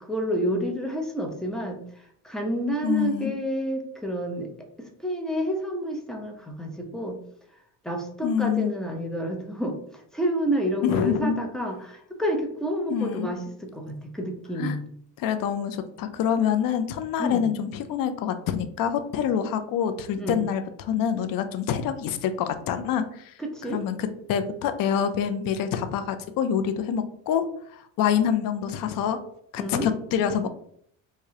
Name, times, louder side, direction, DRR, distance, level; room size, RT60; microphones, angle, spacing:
voice 1, 0.0-4.5 4.8-7.2 7.8-14.9 17.2-17.4 20.2-20.4 23.4-23.8 29.6-29.9, equal, ahead, 2 dB, 0.7 m, -29 dB
voice 2, 2.8-3.3 8.2-8.7 10.8-11.4 12.9-13.3 14.6-14.8 15.2-23.3 23.7-27.4 27.7-29.2 29.5-30.5, left 8 dB, 60° left, 9 dB, 0.6 m, -26 dB
4.8 x 2.3 x 2.8 m, 0.66 s
cardioid pair, 115°, 39 cm